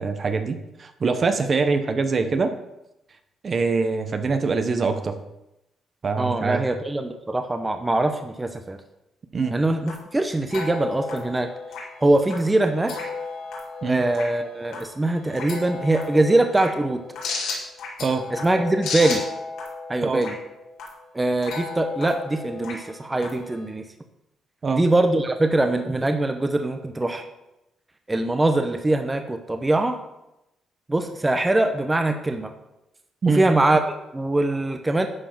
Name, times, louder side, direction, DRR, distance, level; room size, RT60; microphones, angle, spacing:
voice 1, 0.0-2.5 3.4-5.2 6.0-6.6 9.3-9.6 13.8-14.0 18.0-18.3 20.0-20.2 24.6-24.8 33.2-33.4, right 4 dB, 40° right, 8 dB, 1.0 m, -24 dB
voice 2, 6.2-8.8 9.5-11.5 12.0-12.9 13.9-17.0 18.3-19.2 19.9-20.4 21.1-23.8 24.7-27.2 28.1-30.0 30.9-32.5 33.3-35.1, right 2 dB, 15° right, 6 dB, 0.9 m, -22 dB
sound 1, 9.4-23.7, left 4 dB, 85° left, 2.9 m, -35 dB
11.0 x 4.9 x 5.9 m, 0.89 s
cardioid pair, 90°, 0 cm